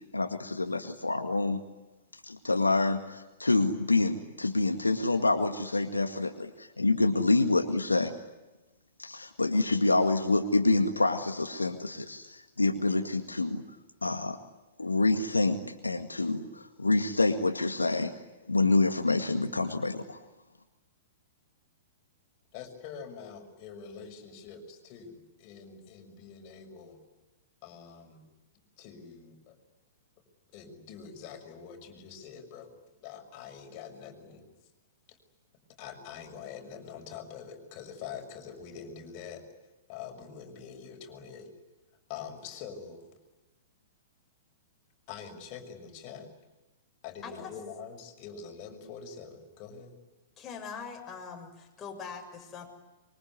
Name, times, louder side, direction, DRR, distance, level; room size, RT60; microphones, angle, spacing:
voice 1, 0.1-1.6 2.3-8.1 9.0-13.6 14.0-14.4 14.8-18.1 18.5-20.2, left 3 dB, 90° left, 6 dB, 2.0 m, -27 dB
voice 2, 22.5-27.0 27.6-28.2 28.8-29.6 30.5-32.7 33.0-34.5 35.1-35.2 35.8-39.4 39.9-41.5 42.1-43.1 45.1-46.3 47.0-50.0, left 7 dB, 40° left, 4 dB, 6.3 m, -45 dB
voice 3, 50.4-52.7, left 6 dB, 20° left, 2 dB, 7.0 m, -42 dB
25.5 x 24.0 x 9.7 m, 1.1 s
figure-of-eight pair, 110°, 0 cm